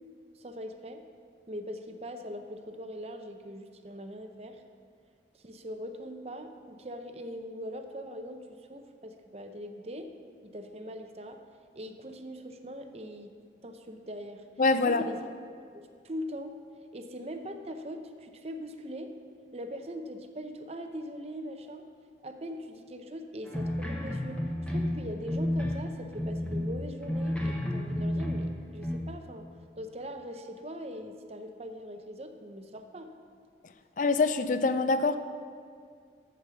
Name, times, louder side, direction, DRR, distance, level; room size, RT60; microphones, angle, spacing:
voice 1, 0.3-1.0 1.5-4.6 5.3-10.1 10.4-11.4 11.7-13.3 13.6-14.4 14.8-15.2 15.7-16.6 16.9-19.1 19.5-21.9 22.2-24.4 24.7-29.5 29.8-33.1, equal, 35° right, 6 dB, 0.7 m, -41 dB
voice 2, 14.6-15.0 34.0-35.2, left 3 dB, 45° left, 11 dB, 0.5 m, -24 dB
sound 1, 23.5-25.9 26.1-29.0, left 1 dB, 5° left, 1.0 m, -31 dB
8.1 x 7.3 x 6.9 m, 2.2 s
head